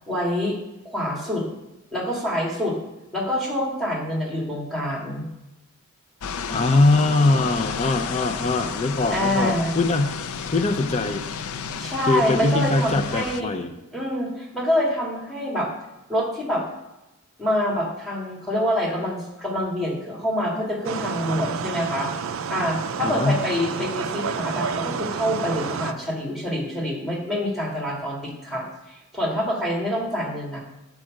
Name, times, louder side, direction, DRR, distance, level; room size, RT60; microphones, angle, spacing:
voice 1, 0.1-0.6 0.8-1.4 1.9-2.8 3.1-5.3 9.1-9.8 11.8-13.5 13.9-15.7 16.1-16.6 17.4-22.1 22.5-30.6, equal, ahead, -2 dB, 2.0 m, -26 dB
sound 1, 6.2-13.4, left 6 dB, 85° left, 0.5 m, -32 dB
voice 2, 6.5-11.2 12.1-13.7 23.0-23.4, left 2 dB, 30° left, 7 dB, 0.5 m, -22 dB
sound 2, 20.8-25.9, right 6 dB, 65° right, 0.4 m, -29 dB
7.4 x 4.8 x 6.3 m, 0.95 s
head